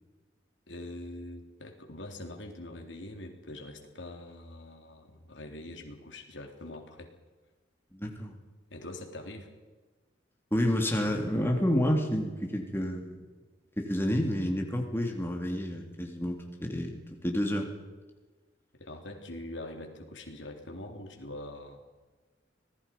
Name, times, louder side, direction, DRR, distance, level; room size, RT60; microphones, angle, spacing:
voice 1, 0.7-7.1 8.7-9.5 18.7-21.8, left 1 dB, 90° left, 3 dB, 3.6 m, -43 dB
voice 2, 7.9-8.3 10.5-13.2 13.8-17.7, equal, 15° left, 2 dB, 3.0 m, -29 dB
26.0 x 19.5 x 5.4 m, 1.3 s
head